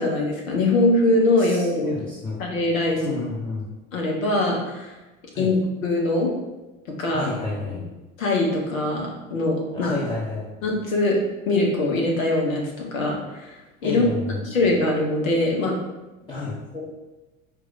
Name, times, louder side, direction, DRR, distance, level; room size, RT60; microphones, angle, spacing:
voice 1, 0.0-2.0 2.4-3.2 3.9-4.9 5.4-5.6 5.8-6.3 7.0-7.3 8.2-9.9 10.6-11.2 11.5-13.5 13.8-14.1 14.4-15.7 16.7-16.9, left 2 dB, 70° left, -1 dB, 1.2 m, -22 dB
voice 2, 1.4-2.4 2.9-3.7 5.3-5.5 7.1-7.8 9.7-10.5 13.8-14.4 16.3-16.6, left 2 dB, 10° left, -6 dB, 0.8 m, -30 dB
4.6 x 2.5 x 3.9 m, 1.1 s
figure-of-eight pair, 75°, 42 cm